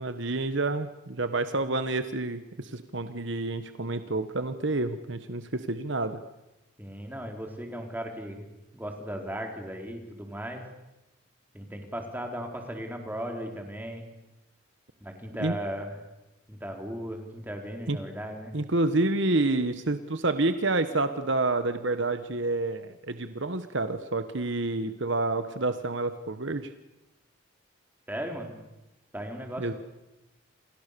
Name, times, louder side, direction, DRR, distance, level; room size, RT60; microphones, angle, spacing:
voice 1, 0.0-6.2 15.4-15.6 17.9-18.0 18.5-26.7 29.6-29.7, right 2 dB, 60° right, 10 dB, 1.3 m, -28 dB
voice 2, 6.8-8.4 8.7-10.6 11.5-14.0 15.0-16.0 16.5-18.5 28.1-28.6 29.1-29.7, equal, 10° right, 2 dB, 4.4 m, -36 dB
29.5 x 27.0 x 6.9 m, 0.99 s
head